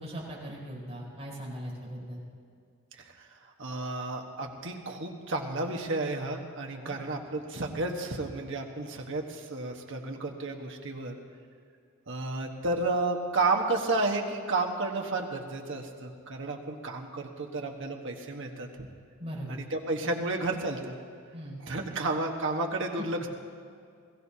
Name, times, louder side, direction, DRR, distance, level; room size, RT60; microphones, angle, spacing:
voice 1, 0.0-2.2 6.7-6.9 19.2-19.6 21.3-21.6 23.0-23.1, equal, 30° right, -5 dB, 4.4 m, -39 dB
voice 2, 3.6-11.1 12.1-18.7 19.5-20.9 21.6-23.3, right 2 dB, 65° right, 2 dB, 1.4 m, -32 dB
21.5 x 16.0 x 2.9 m, 2.3 s
head